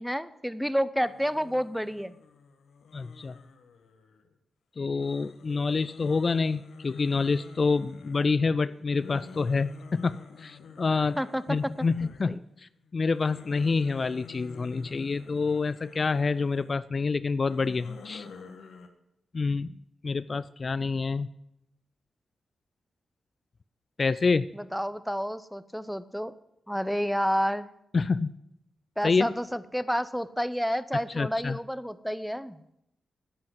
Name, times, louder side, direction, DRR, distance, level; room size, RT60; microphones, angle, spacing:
voice 1, 0.0-2.1 11.2-11.7 12.0-12.4 24.5-26.3 26.7-27.7 29.0-32.6, equal, ahead, 15 dB, 0.8 m, -30 dB
sound 1, 1.0-4.4 5.0-12.4 12.8-16.7 17.3-18.9, left 6 dB, 75° left, 1.2 m, -49 dB
voice 2, 2.9-3.4 4.8-11.2 11.5-18.3 19.3-19.8 20.0-21.3 24.0-24.5 27.9-28.3 29.0-29.3 31.2-31.6, left 4 dB, 50° left, 16 dB, 0.4 m, -27 dB
10.5 x 7.8 x 7.7 m, 0.82 s
supercardioid pair, 40°, 0 cm